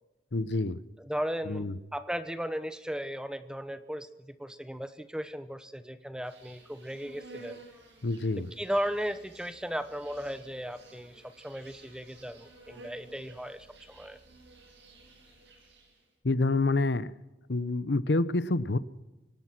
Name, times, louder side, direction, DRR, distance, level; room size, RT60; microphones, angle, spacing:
voice 1, 0.3-0.8 1.5-1.8 8.0-8.5 16.2-17.1 17.5-18.8, left 2 dB, 80° left, 16 dB, 0.9 m, -27 dB
voice 2, 1.0-1.7 1.9-7.6 8.6-14.2, equal, 5° right, 11 dB, 0.9 m, -36 dB
Insect, 6.2-16.1, right 2 dB, 85° right, 7.4 m, -53 dB
24.0 x 18.5 x 6.0 m, 1.0 s
head